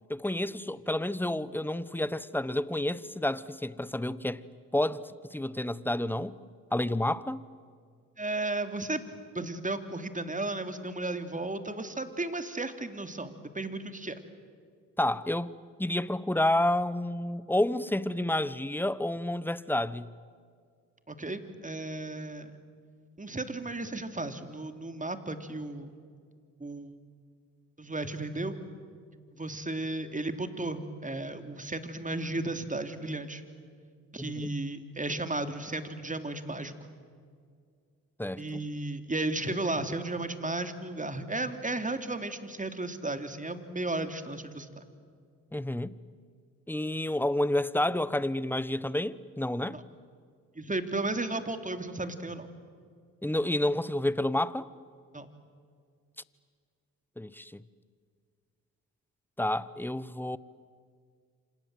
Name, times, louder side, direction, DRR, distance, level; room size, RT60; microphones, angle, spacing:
voice 1, 0.1-4.4 4.7-6.4 6.7-7.4 15.0-15.5 15.8-20.1 34.2-34.5 38.2-38.6 45.5-45.9 46.7-49.8 53.2-54.7 57.2-57.6 59.4-60.4, left 1 dB, 5° left, 1.1 m, -30 dB
voice 2, 8.2-9.0 9.3-14.1 21.1-22.5 23.2-26.0 26.6-27.0 27.8-28.6 29.3-33.4 34.1-36.7 38.4-44.8 49.7-49.8 50.5-52.5 55.1-55.3, right 2 dB, 20° right, 3.1 m, -34 dB
28.5 x 26.5 x 7.9 m
hypercardioid pair, 50°, 38 cm